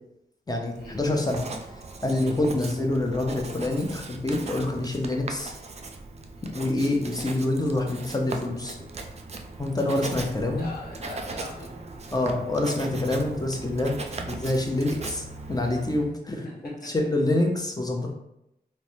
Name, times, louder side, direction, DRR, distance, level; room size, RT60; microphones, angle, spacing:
voice 1, 0.5-1.4 2.0-5.5 6.5-8.8 9.6-10.7 12.1-15.2 15.5-16.5 16.8-18.1, left 2 dB, 20° left, 1 dB, 0.6 m, -26 dB
Writing, 0.7-16.1, right 3 dB, 40° right, 0.4 m, -39 dB
voice 2, 10.6-11.7 16.3-16.9 17.3-17.4, left 2 dB, 60° left, -3 dB, 1.1 m, -42 dB
3.1 x 2.1 x 2.7 m, 0.83 s
cardioid pair, 50°, 17 cm